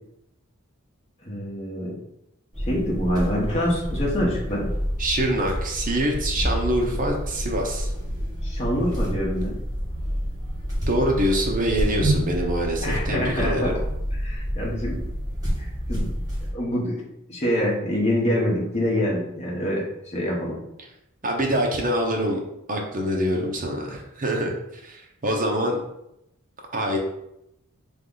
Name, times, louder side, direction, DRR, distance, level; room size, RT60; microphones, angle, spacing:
voice 1, 1.2-2.0 2.6-4.7 8.4-9.6 12.8-13.7 14.2-15.0 15.6-16.1 16.5-17.0 17.3-20.6, equal, 30° left, -4 dB, 1.1 m, -26 dB
sound 1, 2.5-16.5, equal, 15° right, 1.6 m, -28 dB
voice 2, 5.0-7.9 10.9-13.7 21.2-22.4 22.7-25.8 26.7-27.0, right 1 dB, 35° right, 0 dB, 0.8 m, -25 dB
3.5 x 3.2 x 3.9 m, 0.83 s
head